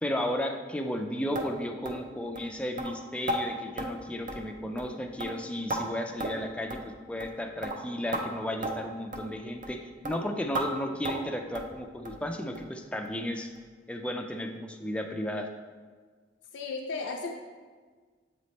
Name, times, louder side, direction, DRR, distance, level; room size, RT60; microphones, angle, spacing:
voice 1, 0.0-13.5 13.9-15.5, left 1 dB, 5° left, 4 dB, 0.4 m, -34 dB
sound 1, 1.4-1.5 1.9-2.0 2.4-2.5 2.8-2.9 3.3-3.4 3.8-3.9 4.3-4.5 4.8-4.9 5.2-5.8 6.2-6.4 6.7-6.9 7.2-7.4 7.6-7.8 8.1-8.2 8.6-8.7 9.1-9.3 9.6-9.8 10.0-10.2 10.5-10.7 11.0-11.3 11.6-11.7 12.1-12.2 12.6-12.7 13.1-13.2 13.6-13.7, right 1 dB, 45° right, 0.5 m, -34 dB
voice 2, 16.5-17.3, left 4 dB, 75° left, 1 dB, 0.4 m, -34 dB
7.4 x 3.2 x 4.1 m, 1.5 s
head